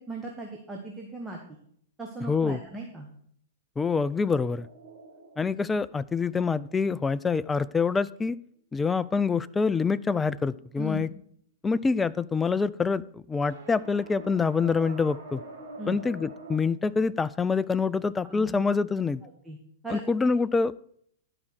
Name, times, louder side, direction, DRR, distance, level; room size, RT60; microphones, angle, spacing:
voice 1, 0.0-1.4 2.0-3.1 10.8-11.0 15.8-16.0 18.3-18.5 19.2-19.6 19.8-20.0, right 2 dB, 10° right, 0 dB, 1.3 m, -37 dB
voice 2, 2.3-2.6 3.8-4.7 5.4-8.4 8.7-11.1 11.6-15.4 15.9-19.2 19.9-20.7, left 4 dB, 10° left, 17 dB, 0.3 m, -26 dB
sound 1, 4.6-6.9 13.4-16.6, right 2 dB, 60° right, 1.9 m, -45 dB
11.0 x 5.4 x 6.3 m, 0.65 s
figure-of-eight pair, 100°, 0 cm